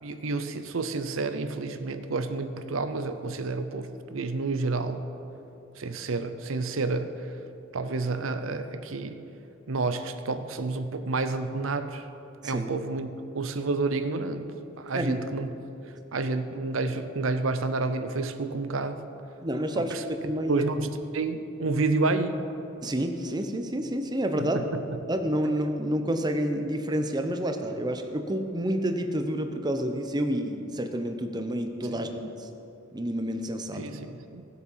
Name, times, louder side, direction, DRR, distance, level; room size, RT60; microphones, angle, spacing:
voice 1, 0.0-5.0 5.8-7.3 7.7-9.2 9.7-12.0 12.4-15.5 16.1-19.1 19.8-20.0 20.5-22.4 24.4-25.0 33.7-34.4, right 3 dB, 70° right, 9 dB, 0.6 m, -30 dB
voice 2, 19.4-20.6 22.8-24.6 25.1-32.5 32.9-34.0, right 1 dB, 20° right, 6 dB, 0.7 m, -29 dB
16.0 x 8.2 x 5.6 m, 2.9 s
head